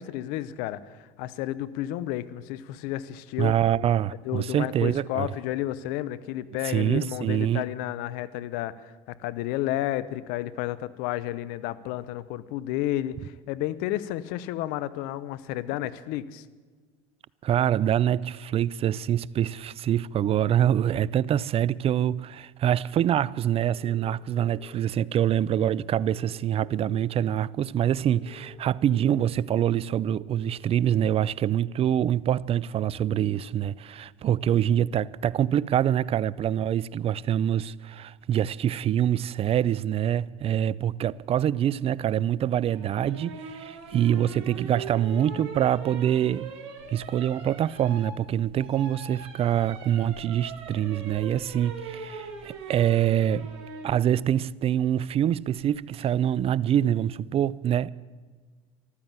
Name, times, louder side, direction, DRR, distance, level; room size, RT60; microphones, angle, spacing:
voice 1, 0.0-3.5 4.2-16.4, left 14 dB, 70° left, 0.8 m, -31 dB
voice 2, 3.4-5.3 6.6-7.6 17.4-46.5 46.9-53.5 53.8-57.9, right 10 dB, 40° right, 0.5 m, -25 dB
sound 1, 23.7-24.8 25.9-27.0 28.1-29.3 30.4-30.6, left 6 dB, 50° left, 1.8 m, -51 dB
sound 2, 42.7-53.9 55.6-56.0, right 4 dB, 75° right, 4.1 m, -42 dB
14.5 x 12.5 x 7.4 m
hypercardioid pair, 85°, 16 cm